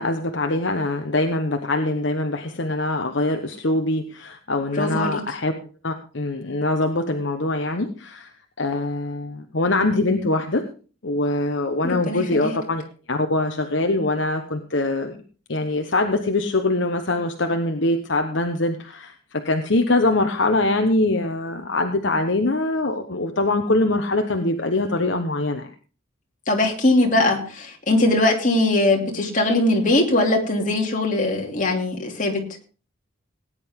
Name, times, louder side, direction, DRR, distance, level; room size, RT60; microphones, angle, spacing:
voice 1, 0.0-5.6 5.8-10.6 11.0-12.8 13.1-15.2 15.5-25.7, left 2 dB, 60° left, 5 dB, 1.1 m, -23 dB
voice 2, 4.7-5.2 11.8-12.6 26.5-32.4, left 2 dB, 40° left, 1 dB, 2.8 m, -21 dB
18.5 x 10.0 x 3.7 m, 0.37 s
head